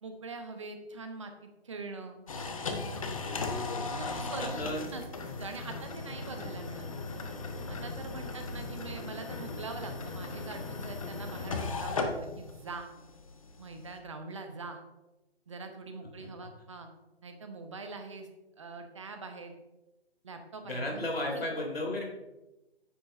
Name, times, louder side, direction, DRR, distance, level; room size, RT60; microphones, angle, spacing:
voice 1, 0.0-2.2 3.8-4.6 4.9-5.0 5.4-6.9 7.7-12.9 13.6-14.8 15.5-16.9 17.2-18.3 18.6-19.5 20.2-21.7, right 3 dB, 30° right, 6 dB, 0.8 m, -43 dB
sound 1, 2.3-14.0, left 3 dB, 30° left, 0.8 m, -38 dB
voice 2, 3.2-4.9 6.1-6.5 16.2-16.3 20.6-22.1, left 1 dB, 60° left, 0 dB, 2.9 m, -36 dB
9.9 x 7.5 x 2.6 m, 1.0 s
figure-of-eight pair, 145°, 33 cm